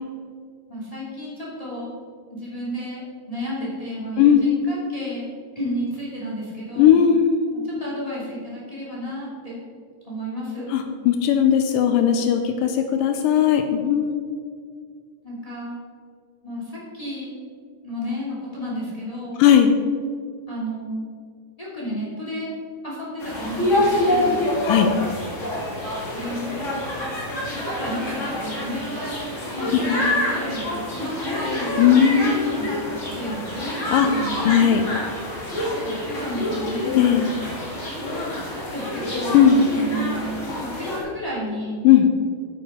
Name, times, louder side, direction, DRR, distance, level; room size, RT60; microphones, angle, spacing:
voice 1, 0.7-1.9 2.3-5.3 5.5-7.0 7.6-9.6 10.0-10.8 15.2-15.8 16.4-17.3 17.8-19.4 20.5-21.1 21.6-22.5 22.8-24.4 26.1-26.6 27.5-29.2 29.5-31.8 32.5-32.7 33.0-34.7 35.8-35.9 36.2-37.0 38.6-39.4 39.7-40.3 40.6-41.8, equal, 10° left, -6 dB, 1.9 m, -32 dB
voice 2, 4.2-4.5 6.8-7.5 10.7-14.2 19.4-19.7 24.6-24.9 31.8-32.5 33.9-34.1 34.4-34.8 36.8-37.3 39.3-39.7 41.8-42.1, left 8 dB, 90° left, 6 dB, 2.0 m, -17 dB
sound 1, 23.2-41.0, left 1 dB, 40° left, 1.0 m, -27 dB
9.0 x 8.6 x 4.3 m, 2.1 s
omnidirectional pair, 4.5 m